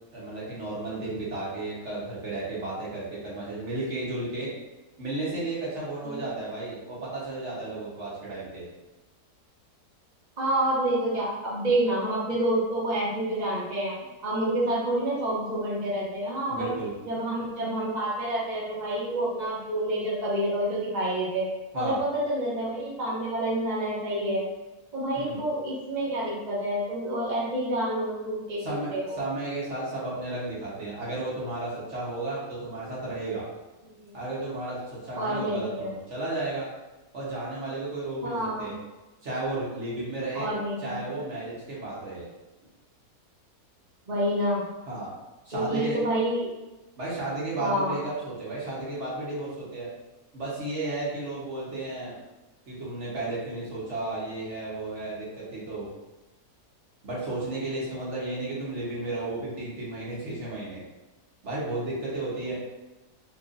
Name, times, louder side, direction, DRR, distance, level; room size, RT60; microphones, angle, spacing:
voice 1, 0.1-4.5 5.0-8.7 16.5-16.9 21.7-22.0 25.1-25.4 28.6-33.4 34.1-36.7 37.1-38.7 39.2-40.5 40.8-42.3 44.8-45.1 45.4-46.0 47.0-49.9 50.3-52.2 52.7-55.9 57.0-60.8 61.4-62.5, right 2 dB, 50° right, -7 dB, 1.3 m, -33 dB
voice 2, 10.4-13.9 14.2-16.7 17.1-21.4 21.7-24.4 24.9-29.2 33.8-34.1 35.1-35.9 38.2-38.7 40.3-40.9 44.1-44.6 45.5-46.5 47.6-48.0, right 1 dB, 35° right, -7 dB, 0.9 m, -28 dB
4.4 x 2.9 x 2.5 m, 1.1 s
omnidirectional pair, 1.6 m